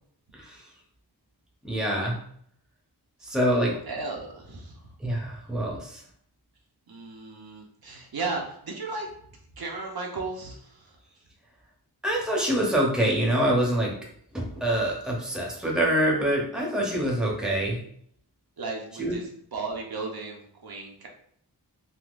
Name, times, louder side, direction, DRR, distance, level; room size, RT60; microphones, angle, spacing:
voice 1, 0.3-0.6 1.6-2.2 3.2-3.7 5.0-6.0 12.0-13.9 14.3-17.8 19.0-19.2, right 1 dB, ahead, -2 dB, 0.8 m, -25 dB
voice 2, 3.6-4.9 6.9-9.1 9.5-11.0 17.2-17.3 18.6-19.2 19.5-21.1, right 3 dB, 65° right, 0 dB, 0.7 m, -35 dB
3.6 x 2.7 x 2.4 m, 0.65 s
wide cardioid pair, 100°, 41 cm